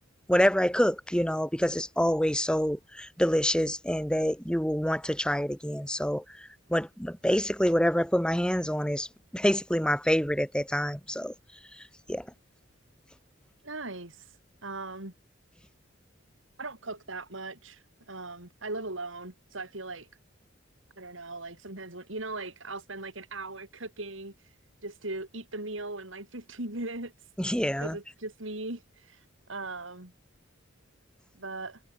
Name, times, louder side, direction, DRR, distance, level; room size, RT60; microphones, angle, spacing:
voice 1, 0.3-11.3 11.7-12.3 27.4-28.0, equal, 5° left, 3.6 m, -27 dB
voice 2, 13.6-15.1 16.6-20.1 21.0-24.6 24.8-27.3 27.8-30.1 31.4-31.8, right 2 dB, 75° right, 5.0 m, -39 dB
head